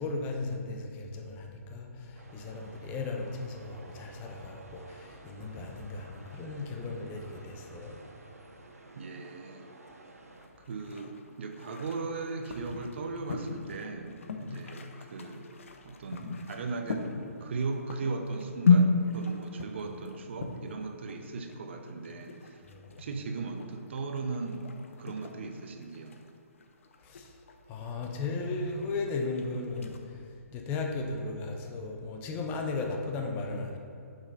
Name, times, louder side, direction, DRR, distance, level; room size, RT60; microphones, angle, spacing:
voice 1, 0.0-8.0 22.7-23.0 27.0-27.4 27.7-33.8, left 3 dB, 20° left, 2 dB, 0.7 m, -36 dB
sound 1, 2.1-10.5, right 2 dB, 70° right, 0.9 m, -52 dB
voice 2, 9.0-9.7 10.6-15.5 15.8-17.1 17.4-22.7 23.0-24.7 25.0-26.2, right 3 dB, 50° right, 5 dB, 0.7 m, -37 dB
sound 2, 10.3-30.0, left 4 dB, 55° left, 0.7 m, -34 dB
7.1 x 5.4 x 4.0 m, 2.5 s
figure-of-eight pair, 130°, 8 cm